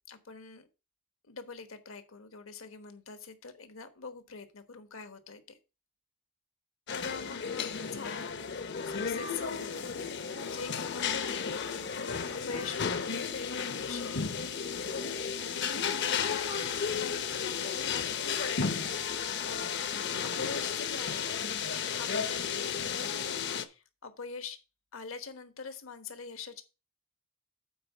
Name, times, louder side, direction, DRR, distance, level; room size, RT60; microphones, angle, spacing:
voice 1, 0.1-0.7 1.2-5.6 6.9-8.3 8.8-13.0 13.3-14.3 15.4-19.7 20.2-21.3 21.6-24.6 24.9-26.6, left 5 dB, 75° left, 9 dB, 1.2 m, -44 dB
sound 1, 6.9-23.7, left 6 dB, 55° left, 0.8 m, -33 dB
8.6 x 4.4 x 5.9 m, 0.30 s
head